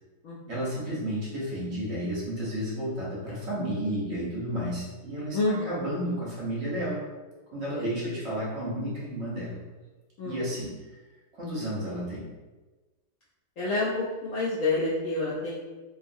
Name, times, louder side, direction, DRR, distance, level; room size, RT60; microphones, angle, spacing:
voice 1, 0.5-7.1 7.5-9.6 10.2-11.0 11.3-12.3, equal, 55° right, -7 dB, 0.8 m, -32 dB
voice 2, 5.3-5.8 7.7-7.9 10.2-10.3 13.6-13.9 14.2-15.6, left 2 dB, 75° left, -7 dB, 0.7 m, -28 dB
2.8 x 2.3 x 2.6 m, 1.2 s
omnidirectional pair, 1.9 m